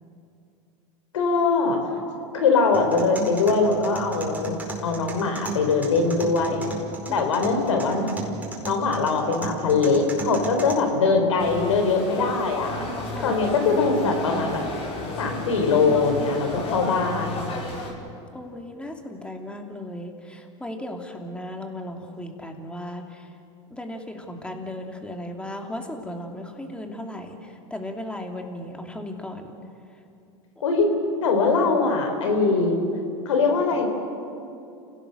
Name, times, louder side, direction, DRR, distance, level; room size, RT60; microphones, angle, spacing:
voice 1, 1.1-1.8 2.3-6.7 7.1-8.1 8.6-12.7 13.2-14.6 15.2-17.5 30.6-30.9 31.2-32.8 33.3-33.9, left 4 dB, 90° left, 5 dB, 3.9 m, -22 dB
sound 1, 2.7-10.7, right 4 dB, 10° right, 4.8 m, -36 dB
sound 2, 11.4-17.9, left 2 dB, 40° left, 4.9 m, -33 dB
voice 2, 18.3-23.3 23.7-29.6, left 1 dB, 5° left, 3 dB, 2.7 m, -36 dB
29.5 x 17.0 x 6.6 m, 2.6 s
hypercardioid pair, 105°, 16 cm